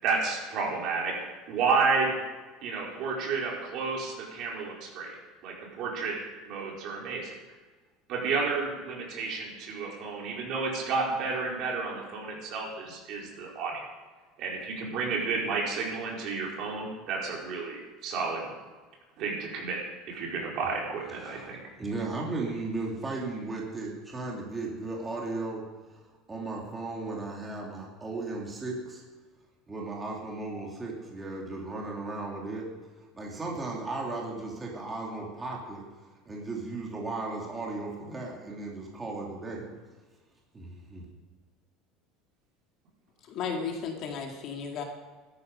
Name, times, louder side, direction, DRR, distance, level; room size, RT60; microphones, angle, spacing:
voice 1, 0.0-1.1 1.5-2.2 2.6-5.2 5.4-6.2 6.5-7.3 8.1-13.9 14.4-18.5 19.2-19.8 20.1-21.6, right 4 dB, 45° right, -2 dB, 4.5 m, -31 dB
voice 2, 21.2-25.6 25.9-26.0 26.3-29.0 29.7-32.7 33.1-35.8 36.3-39.7 40.5-41.0, right 3 dB, 10° right, -2 dB, 2.7 m, -36 dB
voice 3, 43.3-44.8, left 6 dB, 40° left, 2 dB, 2.0 m, -34 dB
17.0 x 13.0 x 5.3 m, 1.3 s
cardioid pair, 170°, 0 cm